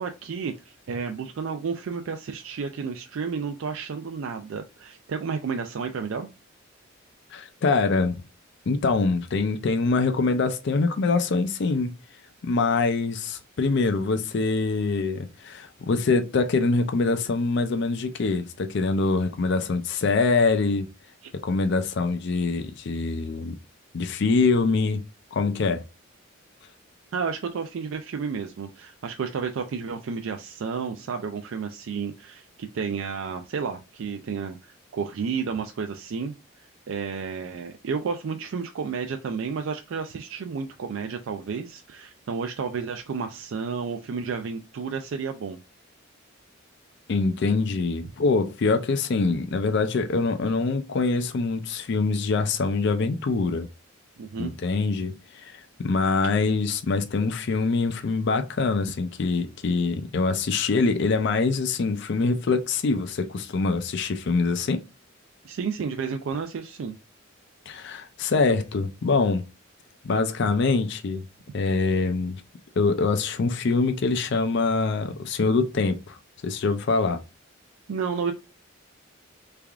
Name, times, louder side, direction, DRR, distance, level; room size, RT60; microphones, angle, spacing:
voice 1, 0.0-6.3 27.1-45.6 54.2-54.5 65.4-67.0 77.9-78.3, right 5 dB, 70° right, 0.4 m, -31 dB
voice 2, 7.3-8.2 8.7-11.9 12.4-20.9 21.4-23.6 23.9-25.0 25.3-25.8 47.1-53.7 54.4-64.8 67.7-69.4 70.0-71.2 71.5-72.4 72.8-76.2 76.4-77.2, left 4 dB, 55° left, 0.4 m, -24 dB
3.4 x 3.3 x 2.4 m
head